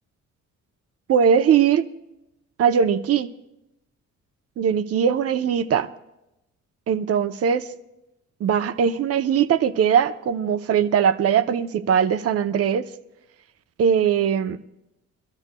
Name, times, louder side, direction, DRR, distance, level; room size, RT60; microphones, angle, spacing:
voice 1, 1.1-1.9 2.6-3.3 4.6-5.9 6.9-7.6 8.4-12.8 13.8-14.6, right 7 dB, 50° right, 0.7 m, -20 dB
25.0 x 13.0 x 2.2 m
cardioid pair, 90°, 30 cm